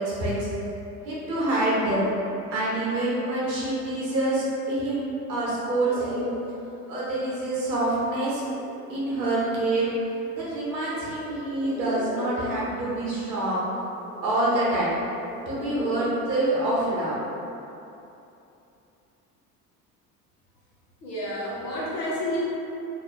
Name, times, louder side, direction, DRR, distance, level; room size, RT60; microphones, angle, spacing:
voice 1, 1.0-2.1 2.5-6.3 6.9-8.5 8.9-9.9 10.3-13.6 14.2-14.9 15.5-17.2, right 1 dB, 85° right, -7 dB, 0.9 m, -26 dB
sound 1, 5.8-6.3 6.8-6.9 7.6-9.8 10.9-12.7 13.8-16.0, equal, 10° left, 0.7 m, -39 dB
voice 2, 21.0-22.4, left 1 dB, 75° left, -7 dB, 1.0 m, -30 dB
3.0 x 2.4 x 3.0 m, 2.9 s
figure-of-eight pair, 70°, 49 cm